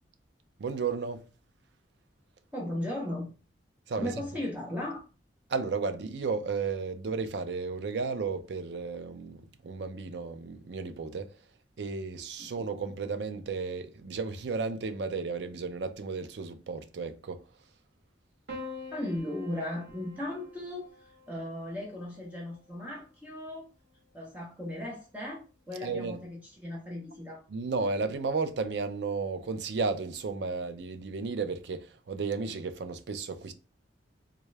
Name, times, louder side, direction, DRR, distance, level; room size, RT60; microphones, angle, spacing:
voice 1, 0.6-1.2 3.9-4.1 5.5-11.3 11.8-17.4 25.8-26.2 27.5-33.5, right 4 dB, 70° right, 0.5 m, -33 dB
voice 2, 2.5-3.3 3.9-5.0 12.4-12.5 18.9-23.7 24.1-27.4, left 1 dB, 10° right, 0.7 m, -37 dB
Piano, 18.5-22.9 24.1-24.8, left 2 dB, 85° right, 1.0 m, -47 dB
3.6 x 2.3 x 3.2 m
head